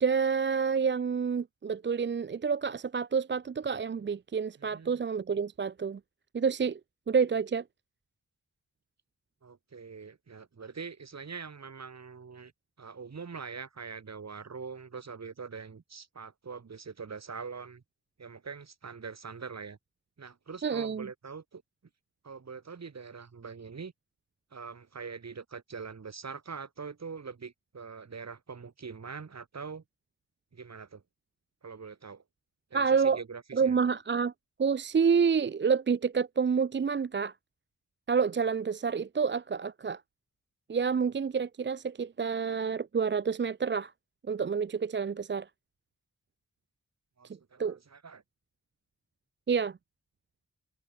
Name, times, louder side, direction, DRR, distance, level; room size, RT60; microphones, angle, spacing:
voice 1, 0.0-6.0 6.3-6.8 7.1-7.6 20.6-21.1 32.7-33.2 33.5-34.3 34.6-37.3 38.1-40.0 40.7-43.9 44.3-45.5 47.6-47.8 49.5-49.8, right 6 dB, 35° right, 0.5 m, -28 dB
voice 2, 4.6-5.0 9.4-12.5 12.8-17.8 18.2-19.8 20.2-21.6 22.2-23.9 24.5-29.8 30.5-31.0 31.6-32.2 32.7-33.8 47.2-48.2, right 5 dB, 55° right, 2.5 m, -43 dB
wide cardioid pair, 90°, 32 cm